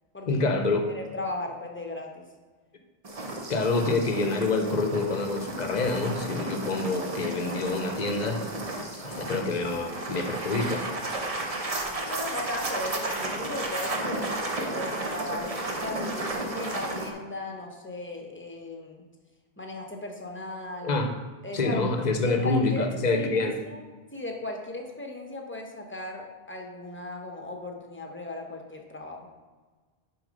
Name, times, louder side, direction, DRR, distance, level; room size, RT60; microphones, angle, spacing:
voice 1, 0.3-0.9 3.5-8.4 9.0-10.8 20.8-21.1 21.5-23.5, left 3 dB, 45° left, 5 dB, 0.8 m, -27 dB
voice 2, 0.9-2.1 9.1-9.4 12.0-19.0 19.6-21.0 21.4-21.8 22.2-23.8 24.1-29.3, left 2 dB, 10° left, 1 dB, 0.8 m, -37 dB
sound 1, 3.0-17.1, right 2 dB, 40° right, 0.9 m, -33 dB
6.3 x 4.8 x 5.2 m, 1.4 s
omnidirectional pair, 1.0 m